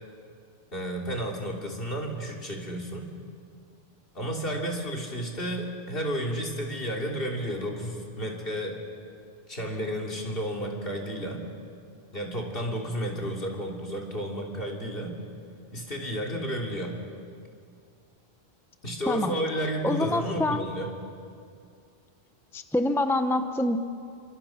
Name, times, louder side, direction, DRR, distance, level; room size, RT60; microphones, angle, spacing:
voice 1, 0.7-3.1 4.1-8.8 9.5-11.5 12.1-15.2 15.7-17.0 18.8-20.9, equal, 60° left, 0 dB, 3.4 m, -32 dB
voice 2, 19.8-20.6 22.5-23.8, left 1 dB, 5° left, 8 dB, 0.8 m, -26 dB
30.0 x 25.0 x 5.9 m, 2.4 s
omnidirectional pair, 1.1 m